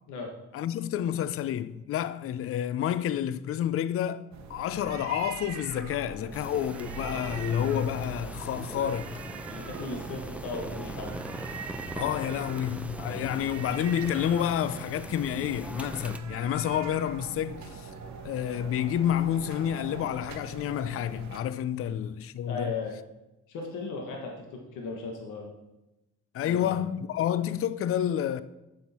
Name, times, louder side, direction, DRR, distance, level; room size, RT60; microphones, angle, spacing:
voice 1, 0.5-9.2 11.9-17.9 18.2-22.7 26.3-28.4, left 10 dB, 50° left, 0.4 m, -29 dB
sound 1, 4.3-21.4, right 6 dB, 65° right, 0.9 m, -42 dB
sound 2, 6.3-16.2, right 1 dB, 5° right, 0.5 m, -41 dB
voice 2, 9.5-11.3 21.7-21.9 22.5-22.9 23.5-25.5 26.4-26.9, left 4 dB, 80° left, 1.3 m, -37 dB
7.8 x 6.4 x 4.2 m
cardioid pair, 90°, 30 cm